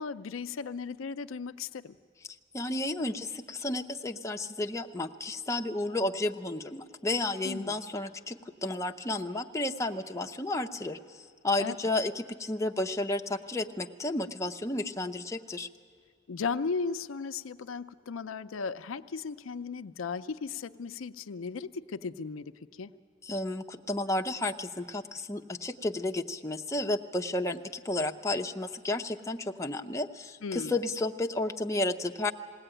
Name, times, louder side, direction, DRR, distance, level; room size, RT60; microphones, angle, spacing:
voice 1, 0.0-2.0 7.4-7.8 11.6-11.8 16.3-22.9 30.4-30.7, left 5 dB, 75° left, 10 dB, 0.5 m, -36 dB
voice 2, 2.5-15.7 23.2-32.3, left 2 dB, 15° left, 3 dB, 0.6 m, -32 dB
20.5 x 17.0 x 9.0 m, 2.1 s
head